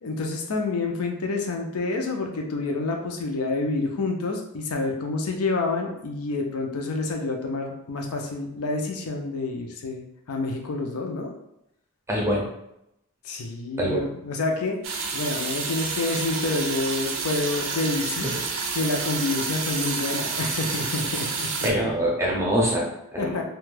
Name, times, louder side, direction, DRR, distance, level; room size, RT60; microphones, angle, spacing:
voice 1, 0.0-11.3 13.2-14.8 15.1-18.3 18.7-21.7 23.2-23.4, left 3 dB, 85° left, 2 dB, 0.5 m, -28 dB
voice 2, 12.1-12.5 13.8-14.1 21.6-23.4, equal, 10° right, -3 dB, 0.5 m, -24 dB
sound 1, 14.8-21.7, right 4 dB, 70° right, 0.5 m, -29 dB
2.5 x 2.2 x 3.2 m, 0.82 s
head